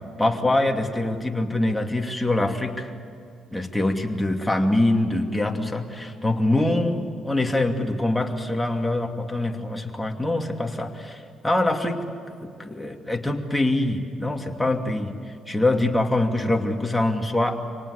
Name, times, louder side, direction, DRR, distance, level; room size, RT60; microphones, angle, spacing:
voice 1, 0.2-2.9 3.5-15.1 15.5-17.6, left 2 dB, 10° left, 2 dB, 2.6 m, -24 dB
26.0 x 18.5 x 8.2 m, 2.4 s
cardioid pair, 90°, 0 cm